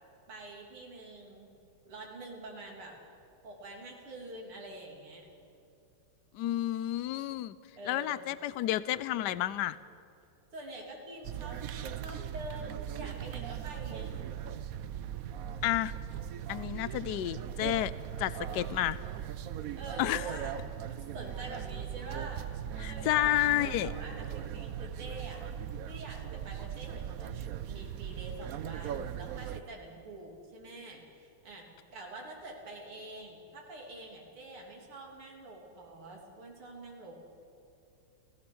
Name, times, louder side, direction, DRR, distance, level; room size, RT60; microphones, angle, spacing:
voice 1, 0.3-1.5 1.9-3.0 3.4-5.3 7.8-8.3 10.5-14.2 18.5-18.7 19.7-20.6 20.9-22.5 22.8-23.3 23.6-25.5 25.9-37.3, right 2 dB, 85° right, -1 dB, 4.1 m, -46 dB
voice 2, 6.3-7.6 7.8-9.8 15.6-15.9 16.5-17.9 18.2-19.0 20.0-20.2 22.8-23.9, left 14 dB, 70° left, 17 dB, 1.1 m, -30 dB
sound 1, 11.2-29.6, right 9 dB, 70° right, 0.8 m, -39 dB
29.5 x 16.0 x 6.4 m, 2.6 s
omnidirectional pair, 2.3 m